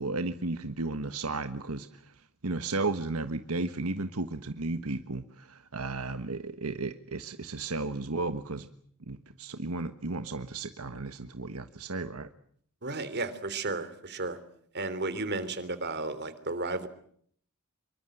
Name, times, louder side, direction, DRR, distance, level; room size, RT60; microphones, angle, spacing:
voice 1, 0.0-8.7 9.1-12.3, right 3 dB, 80° right, 9 dB, 1.4 m, -34 dB
voice 2, 12.8-14.4 14.7-16.9, right 2 dB, 50° right, 13 dB, 3.3 m, -33 dB
26.5 x 24.0 x 7.9 m, 0.62 s
head